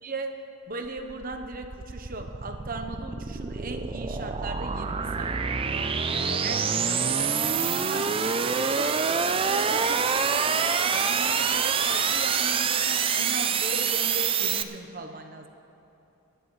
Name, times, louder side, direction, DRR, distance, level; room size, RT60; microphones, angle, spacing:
voice 1, 0.0-5.4 5.7-6.1 6.4-6.7 7.9-8.0 8.5-8.9 9.3-15.5, right 2 dB, 40° right, 5 dB, 0.9 m, -38 dB
sound 1, 0.8-14.6, right 6 dB, 25° right, 0.4 m, -26 dB
voice 2, 6.1-8.6, left 2 dB, 50° left, 7 dB, 0.9 m, -42 dB
25.0 x 11.0 x 3.2 m, 2.9 s
head